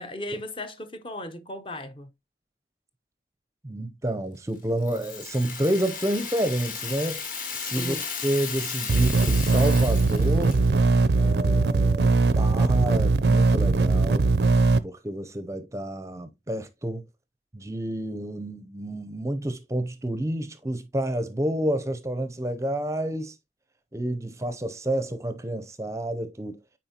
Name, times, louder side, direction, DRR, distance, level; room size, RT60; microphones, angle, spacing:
voice 1, 0.0-2.1 7.8-8.0, left 1 dB, 30° left, 0.6 m, -36 dB
voice 2, 3.6-7.2 7.6-8.0 8.2-10.6 11.2-14.3 14.8-17.0 17.5-23.4 23.9-26.6, right 1 dB, 15° right, 0.5 m, -29 dB
Rattle (instrument), 4.8-10.8, left 6 dB, 50° left, 1.7 m, -35 dB
sound 1, 8.9-14.8, right 3 dB, 70° right, 0.5 m, -20 dB
9.0 x 4.3 x 2.8 m
head